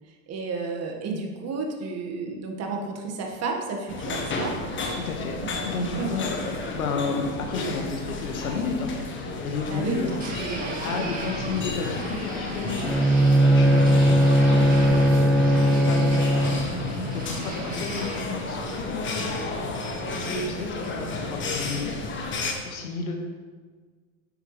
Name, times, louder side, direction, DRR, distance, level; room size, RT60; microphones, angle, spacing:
voice 1, 0.1-5.0 6.0-6.3 9.7-11.2 17.5-17.7 20.1-20.4, right 4 dB, 35° right, 2 dB, 1.7 m, -33 dB
sound 1, 3.9-22.5, left 2 dB, 25° left, 1.4 m, -32 dB
voice 2, 4.9-5.4 5.7-6.4 6.7-9.1 9.4-10.1 10.8-13.1 13.5-15.1 15.4-16.8 17.1-19.3 20.1-22.0 22.6-23.3, left 4 dB, 85° left, 2 dB, 1.7 m, -32 dB
sound 2, 10.2-18.2, right 1 dB, 20° right, 2.3 m, -35 dB
Bowed string instrument, 12.8-16.9, equal, ahead, 0.5 m, -19 dB
9.4 x 8.1 x 3.3 m, 1.5 s
hypercardioid pair, 95°, 42 cm